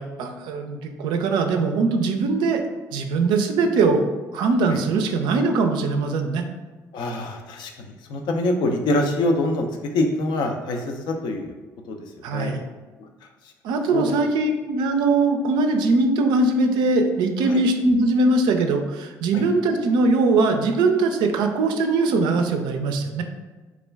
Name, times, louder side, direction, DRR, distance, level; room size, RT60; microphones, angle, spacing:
voice 1, 0.0-2.6 2.9-4.1 4.3-6.4 12.2-12.6 13.6-23.2, right 3 dB, 65° right, 5 dB, 0.3 m, -21 dB
voice 2, 6.9-9.7 9.9-11.5 11.9-12.0 12.3-12.5 13.9-14.0 17.5-17.6 19.3-19.4, left 2 dB, 65° left, 3 dB, 0.4 m, -25 dB
2.3 x 2.1 x 3.3 m, 1.3 s
hypercardioid pair, 55°, 8 cm